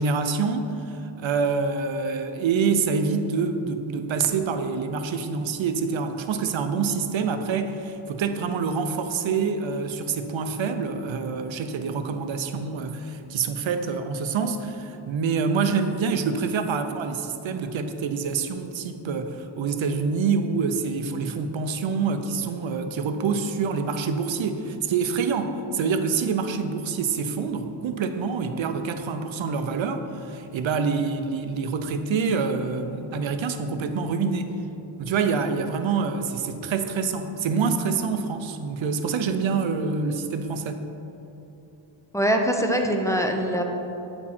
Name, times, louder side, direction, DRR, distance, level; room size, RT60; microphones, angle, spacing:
voice 1, 0.0-34.5 35.0-40.9, right 5 dB, 70° right, 8 dB, 0.6 m, -26 dB
voice 2, 42.1-43.6, equal, 5° left, 1 dB, 0.5 m, -23 dB
8.5 x 4.5 x 4.2 m, 3.0 s
wide cardioid pair, 120°, 48 cm